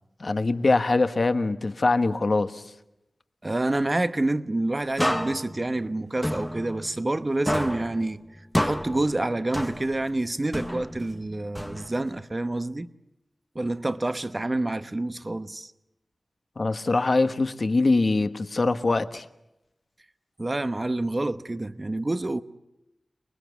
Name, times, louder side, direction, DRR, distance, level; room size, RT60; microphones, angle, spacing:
voice 1, 0.2-2.6 16.6-19.2, left 3 dB, 55° left, 1.3 m, -23 dB
voice 2, 3.4-8.2 8.6-12.9 13.5-15.7 20.4-22.4, right 2 dB, 35° right, 1.0 m, -28 dB
sound 1, 5.0-7.2 7.5-10.1 10.5-12.2, equal, 5° left, 0.9 m, -30 dB
29.0 x 20.5 x 8.2 m
cardioid pair, 50°, 0 cm